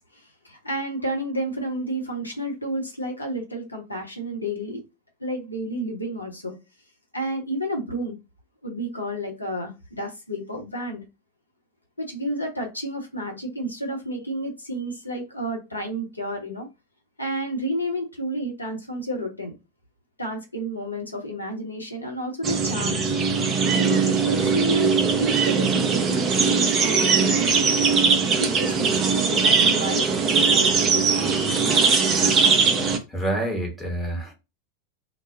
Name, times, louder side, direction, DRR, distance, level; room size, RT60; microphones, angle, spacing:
voice 1, 0.1-4.8 5.2-6.5 7.1-8.2 8.6-11.0 12.0-16.7 17.2-19.6 20.2-23.0 23.8-30.1 30.3-31.2 32.8-32.9, right 1 dB, 85° left, 0.7 m, -31 dB
sound 1, 22.4-33.0, right 5 dB, 25° right, 0.5 m, -20 dB
voice 2, 33.1-34.3, right 1 dB, 10° left, 0.9 m, -27 dB
2.2 x 2.0 x 3.5 m
figure-of-eight pair, 90°, 0 cm